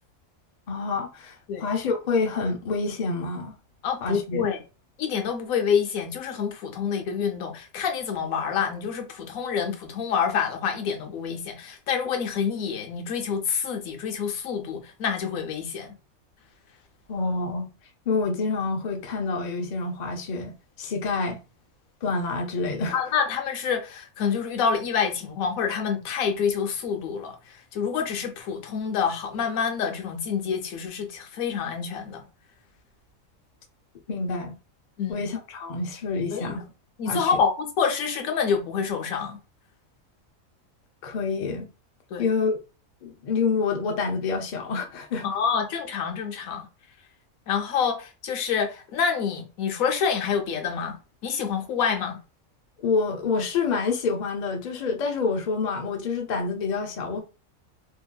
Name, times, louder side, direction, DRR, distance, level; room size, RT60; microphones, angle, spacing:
voice 1, 0.7-3.5 4.0-4.5 17.1-17.7 18.1-21.4 22.0-23.0 34.1-34.6 35.1-36.6 37.1-37.3 41.0-41.7 42.2-42.6 43.0-45.3 52.8-57.2, left 4 dB, 55° left, 0.5 m, -27 dB
voice 2, 3.8-4.6 5.0-15.9 22.9-32.2 35.0-35.2 36.3-36.6 37.0-39.4 42.1-42.3 45.2-46.7 47.5-51.0 51.2-52.2, left 6 dB, 80° left, 1.1 m, -27 dB
3.0 x 2.6 x 2.2 m
omnidirectional pair, 1.4 m